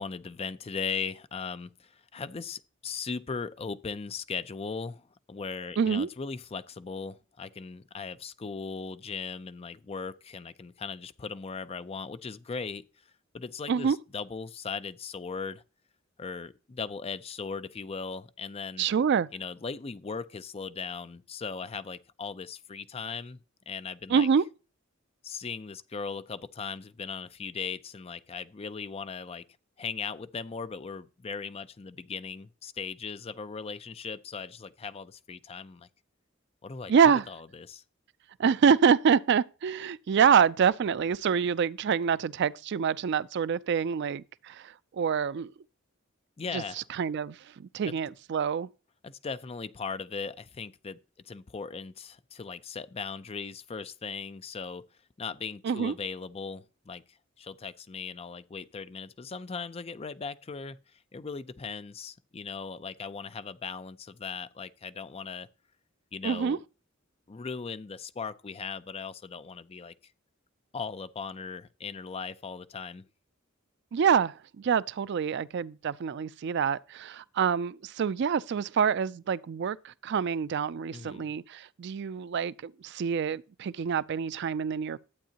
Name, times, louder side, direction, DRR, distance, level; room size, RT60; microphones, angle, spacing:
voice 1, 0.0-12.8 13.3-15.6 16.2-18.9 19.3-23.4 23.7-24.3 25.2-29.4 29.8-35.9 36.6-37.8 46.4-46.9 47.9-48.0 49.0-51.0 51.3-54.8 55.2-65.5 66.1-66.6 67.3-69.9 70.7-73.0 80.9-81.3, left 5 dB, 30° left, 0.5 m, -38 dB
voice 2, 5.8-6.1 13.7-14.0 18.8-19.3 24.1-24.4 36.9-37.2 38.4-45.5 46.5-46.6 47.0-48.7 55.6-55.9 66.2-66.6 73.9-85.0, right 7 dB, 60° right, 0.4 m, -26 dB
12.0 x 8.5 x 2.9 m
head